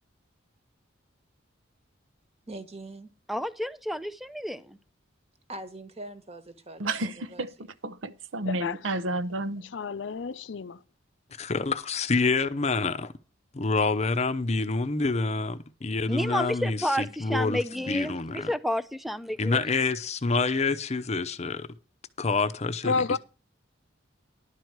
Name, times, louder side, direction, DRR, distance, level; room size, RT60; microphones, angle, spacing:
voice 1, 2.5-3.1 5.5-7.7, right 2 dB, 30° right, 1.3 m, -43 dB
voice 2, 3.3-4.8 16.1-19.6, equal, ahead, 0.5 m, -30 dB
voice 3, 6.8-7.5 7.8-9.6, right 2 dB, 85° right, 0.8 m, -31 dB
voice 4, 8.4-8.9 9.6-10.8 22.8-23.2, left 4 dB, 65° left, 0.5 m, -30 dB
voice 5, 11.4-13.1 13.5-18.5 19.4-21.7 22.2-23.2, left 3 dB, 35° left, 0.7 m, -27 dB
11.5 x 4.6 x 8.0 m
head